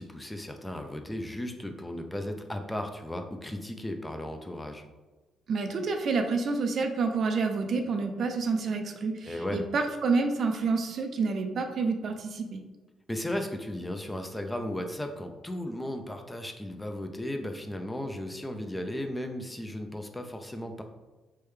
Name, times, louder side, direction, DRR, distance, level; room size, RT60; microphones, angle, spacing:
voice 1, 0.0-4.8 9.2-9.6 13.1-20.8, left 1 dB, 10° left, 6 dB, 0.3 m, -35 dB
voice 2, 5.5-12.6, right 4 dB, 60° right, 5 dB, 0.4 m, -28 dB
3.3 x 2.2 x 3.1 m, 1.2 s
cardioid pair, 90°, 0 cm